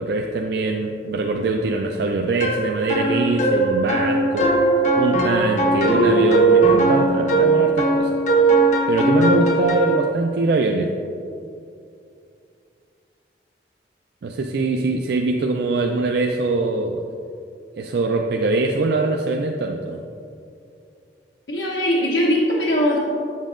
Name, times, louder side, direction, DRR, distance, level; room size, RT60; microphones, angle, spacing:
voice 1, 0.0-4.6 5.0-8.2 8.9-10.9 14.2-17.0 17.8-20.0, right 3 dB, 60° right, 2 dB, 0.3 m, -22 dB
sound 1, 2.4-10.1, right 2 dB, 40° left, 0.6 m, -18 dB
voice 2, 21.5-23.0, equal, 80° left, -4 dB, 0.8 m, -20 dB
7.4 x 7.2 x 2.5 m, 2.5 s
head